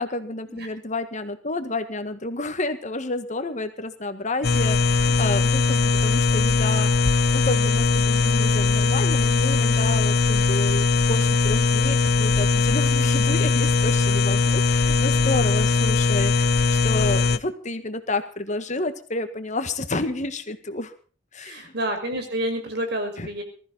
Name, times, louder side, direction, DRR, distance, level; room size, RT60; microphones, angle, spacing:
voice 1, 0.0-6.9 7.3-16.5 16.8-20.9 21.3-21.7 23.2-23.3, left 2 dB, 40° left, 9 dB, 1.7 m, -30 dB
sound 1, 4.4-17.4, left 4 dB, 60° left, 0.8 m, -20 dB
voice 2, 21.4-23.4, right 1 dB, 65° right, 5 dB, 5.7 m, -29 dB
20.5 x 14.5 x 4.1 m, 0.40 s
head